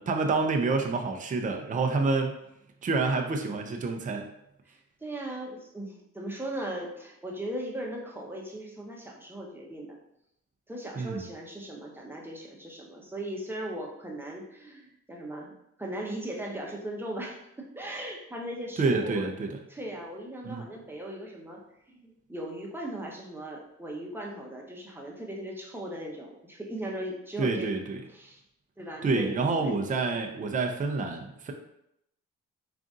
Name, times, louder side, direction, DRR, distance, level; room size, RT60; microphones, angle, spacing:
voice 1, 0.0-2.3 2.8-4.3 11.0-11.2 18.8-19.6 20.4-20.6 27.4-28.0 29.0-31.5, right 3 dB, 25° right, 3 dB, 0.5 m, -28 dB
voice 2, 5.0-9.9 10.7-15.5 15.8-19.3 19.7-21.6 21.9-27.7 28.1-28.4 28.8-29.9, right 1 dB, 5° right, -1 dB, 0.9 m, -38 dB
3.8 x 2.5 x 3.7 m, 0.79 s
cardioid pair, 90°, 30 cm